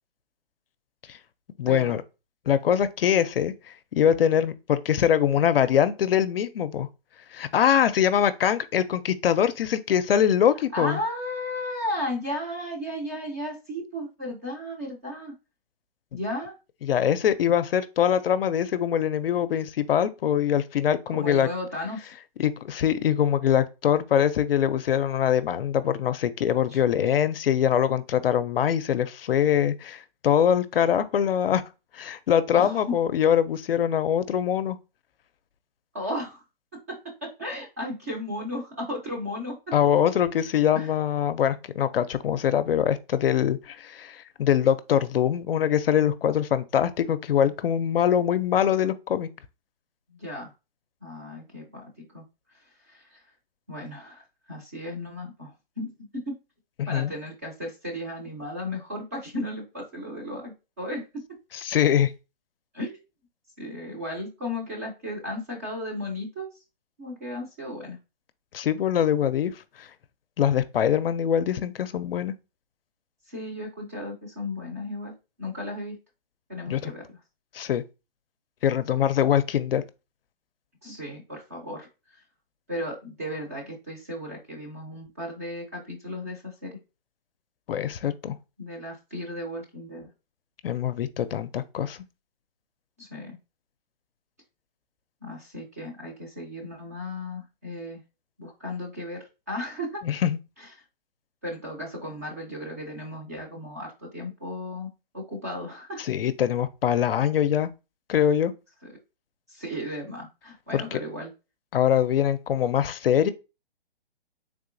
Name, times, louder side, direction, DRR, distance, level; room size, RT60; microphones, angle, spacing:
voice 1, 1.6-2.0 2.5-3.5 3.9-6.9 7.3-11.0 16.1-16.2 16.8-21.5 22.4-31.6 31.9-34.8 39.7-49.3 56.8-57.1 61.5-62.1 68.5-69.5 69.8-69.9 70.4-72.3 76.7-76.9 77.5-77.8 78.6-79.8 87.7-88.3 90.6-92.0 100.0-100.4 106.0-107.7 108.1-108.5 110.7-111.0 111.7-113.3, left 9 dB, 65° left, 0.5 m, -23 dB
voice 2, 10.7-15.3 16.1-16.5 21.1-22.1 26.7-26.8 32.5-32.9 35.9-36.4 36.9-39.6 40.7-40.9 50.2-50.5 51.0-52.2 52.9-53.2 53.7-54.2 54.5-55.5 55.8-55.9 56.3-56.4 56.9-61.0 62.7-63.0 63.6-66.5 67.0-68.0 73.3-75.1 75.4-76.0 76.5-77.0 80.8-81.9 82.7-86.8 88.6-90.1 93.0-93.4 95.2-98.0 98.4-100.0 100.6-100.7 101.4-106.0 109.5-111.3, left 1 dB, 15° right, 0.4 m, -35 dB
3.6 x 2.7 x 2.5 m
hypercardioid pair, 150°, 31 cm